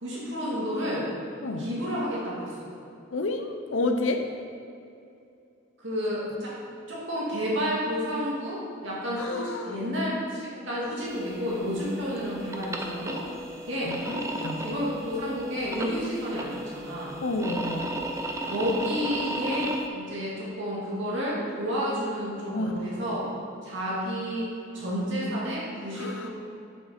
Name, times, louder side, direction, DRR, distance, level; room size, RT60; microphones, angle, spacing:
voice 1, 0.0-1.1 1.6-2.5 5.8-6.5 6.9-13.2 13.7-14.0 14.6-17.2 18.5-23.3 23.6-24.5 24.7-26.3, equal, 70° right, -6 dB, 2.1 m, -30 dB
voice 2, 3.1-4.3 9.1-9.8 13.8-14.8 17.2-17.9 22.5-23.0 25.9-26.3, left 2 dB, 75° left, 6 dB, 0.7 m, -30 dB
sound 1, 11.1-19.9, right 1 dB, 15° right, 0.5 m, -35 dB
8.2 x 7.0 x 4.3 m, 2.6 s
head